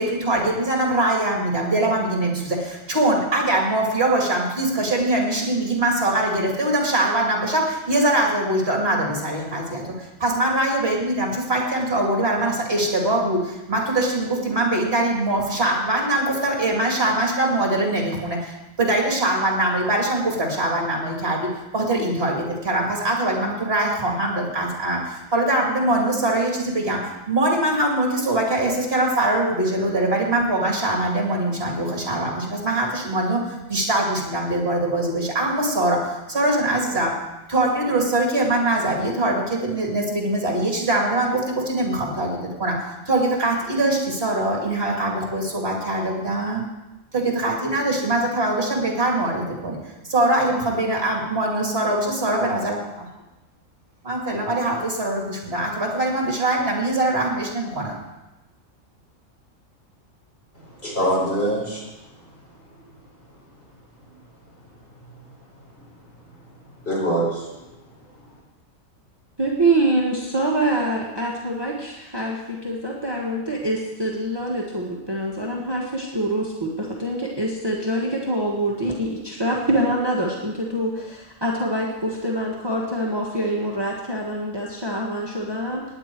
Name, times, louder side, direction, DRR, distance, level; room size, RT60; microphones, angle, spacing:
voice 1, 0.0-37.2 37.5-46.6 47.1-49.8 50.1-53.1 54.0-58.0, right 1 dB, 50° right, -1 dB, 2.6 m, -22 dB
voice 2, 60.5-61.9 66.8-67.7, right 1 dB, 45° left, -5 dB, 5.2 m, -24 dB
voice 3, 69.4-85.9, right 1 dB, 20° right, -3 dB, 1.6 m, -25 dB
17.5 x 10.0 x 4.6 m, 1.0 s
omnidirectional pair, 1.4 m